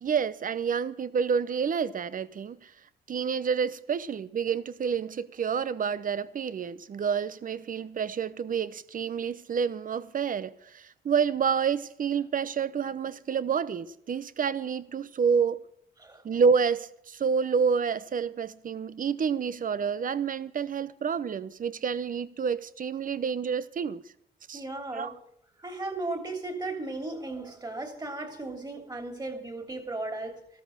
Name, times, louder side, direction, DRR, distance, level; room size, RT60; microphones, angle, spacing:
voice 1, 0.0-2.7 3.1-15.7 16.2-24.0 24.5-24.6 24.9-25.1, right 6 dB, 45° right, 0.8 m, -28 dB
voice 2, 24.5-25.2 25.6-30.4, right 2 dB, 20° right, 3.0 m, -36 dB
14.0 x 13.5 x 6.4 m
cardioid pair, 90°, 20 cm